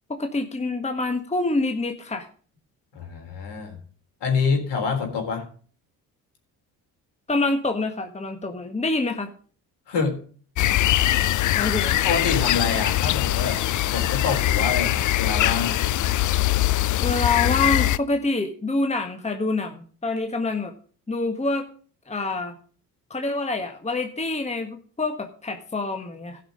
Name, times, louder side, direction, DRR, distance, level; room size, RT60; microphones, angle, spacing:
voice 1, 0.1-2.3 7.3-9.3 11.5-11.9 17.0-20.7 21.1-21.7 22.1-22.5 23.1-26.4, left 3 dB, 15° left, 5 dB, 1.5 m, -26 dB
voice 2, 2.9-3.8 4.2-5.4 9.9-10.2 11.9-13.6 13.9-15.8, left 5 dB, 60° left, 3 dB, 3.8 m, -26 dB
sound 1, 10.6-18.0, left 14 dB, 40° left, 0.5 m, -22 dB
16.5 x 5.9 x 5.1 m, 0.43 s
hypercardioid pair, 50°, 47 cm